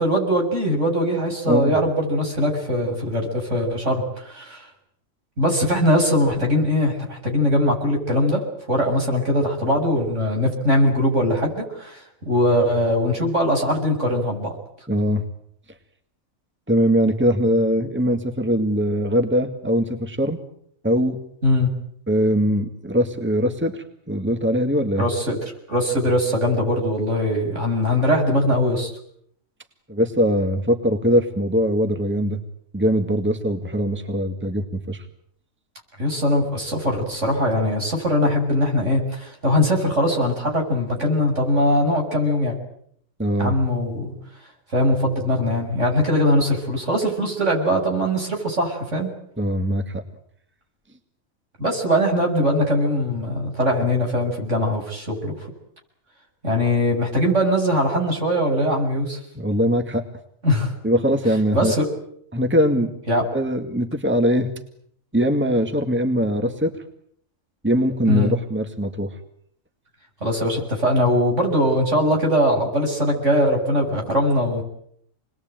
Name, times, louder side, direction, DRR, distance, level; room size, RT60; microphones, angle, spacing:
voice 1, 0.0-4.7 5.4-8.4 8.7-14.6 21.4-21.7 25.0-28.9 36.0-42.6 43.4-44.1 44.7-49.1 51.6-55.3 56.4-59.2 60.4-60.7 61.5-61.8 63.1-63.2 68.1-68.3 70.2-74.6, equal, 60° right, 1 dB, 7.4 m, -21 dB
voice 2, 14.9-15.2 16.7-20.4 20.8-21.2 22.1-25.1 29.9-32.4 32.7-35.0 43.2-43.6 49.4-50.0 59.4-60.0 60.8-61.7 62.3-62.9 63.3-64.5 65.1-66.7 67.6-69.1, equal, 10° right, 6 dB, 2.0 m, -21 dB
29.0 x 21.5 x 9.1 m, 0.68 s
omnidirectional pair, 1.4 m